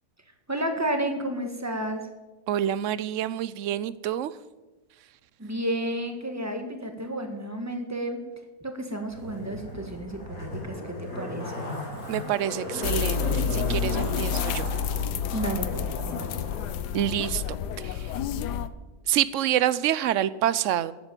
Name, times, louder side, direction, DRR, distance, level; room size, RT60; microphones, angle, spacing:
voice 1, 0.5-2.0 5.4-8.2 8.6-11.6 15.3-16.5, right 1 dB, 10° right, 5 dB, 1.6 m, -31 dB
voice 2, 2.5-4.3 12.1-14.6 16.9-17.4 17.8-18.1 19.1-20.9, right 11 dB, 65° right, 17 dB, 0.8 m, -27 dB
Zipper (clothing), 9.1-16.7 17.0-17.1, left 1 dB, 60° left, 4.9 m, -36 dB
sound 1, 12.8-18.7, left 8 dB, 90° left, 1.3 m, -29 dB
13.5 x 8.3 x 9.1 m, 1.1 s
omnidirectional pair, 1.7 m